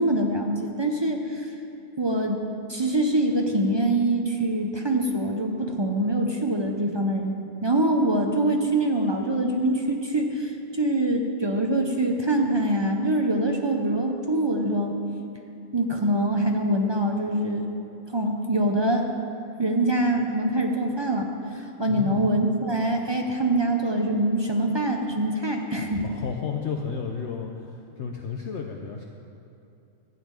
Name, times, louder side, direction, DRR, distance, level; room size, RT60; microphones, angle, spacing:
voice 1, 0.0-1.5 2.0-2.4 2.7-7.3 7.6-14.9 15.7-17.7 18.1-19.1 19.6-21.3 21.5-26.0, right 1 dB, 35° right, 2 dB, 0.4 m, -24 dB
voice 2, 21.9-22.3 26.0-29.0, left 6 dB, 60° left, 2 dB, 0.9 m, -32 dB
12.0 x 5.6 x 8.8 m, 2.7 s
omnidirectional pair, 1.5 m